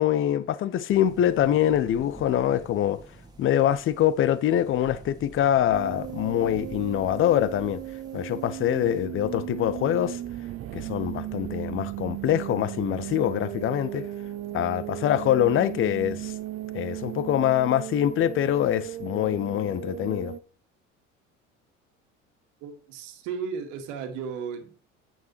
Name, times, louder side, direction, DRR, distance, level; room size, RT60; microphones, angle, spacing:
voice 1, 0.0-3.0 3.4-7.8 8.1-10.2 10.7-14.1 14.5-16.3 16.7-20.3, left 11 dB, 35° left, 0.8 m, -24 dB
sound 1, 0.9-9.1, right 3 dB, 10° right, 2.1 m, -48 dB
sound 2, 5.7-20.4, right 14 dB, 35° right, 0.8 m, -36 dB
voice 2, 22.6-24.8, right 6 dB, 55° right, 2.0 m, -35 dB
9.0 x 9.0 x 3.1 m
figure-of-eight pair, 65°, 37 cm